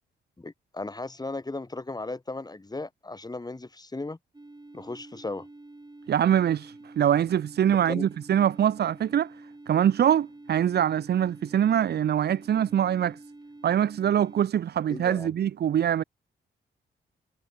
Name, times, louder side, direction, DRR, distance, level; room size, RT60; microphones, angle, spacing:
voice 1, 0.4-4.2 4.7-5.5 7.7-8.1 14.9-15.3, left 2 dB, 20° left, 1.5 m, -36 dB
sound 1, 4.3-14.4, right 2 dB, 20° right, 4.5 m, -48 dB
voice 2, 6.1-9.3 9.7-13.2 13.6-16.0, right 10 dB, 55° right, 0.5 m, -24 dB
supercardioid pair, 55°, 20 cm